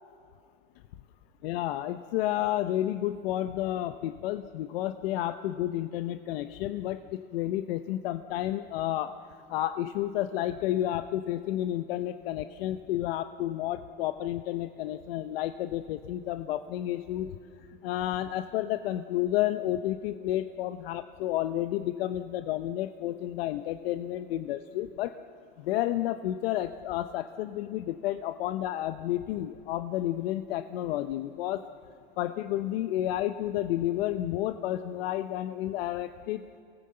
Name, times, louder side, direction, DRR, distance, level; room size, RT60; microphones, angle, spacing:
voice 1, 1.4-9.1 9.5-17.4 17.8-25.1 25.6-31.6 32.2-36.4, left 13 dB, 70° left, 9 dB, 0.9 m, -31 dB
27.0 x 18.5 x 7.8 m, 2.4 s
supercardioid pair, 125°, 31 cm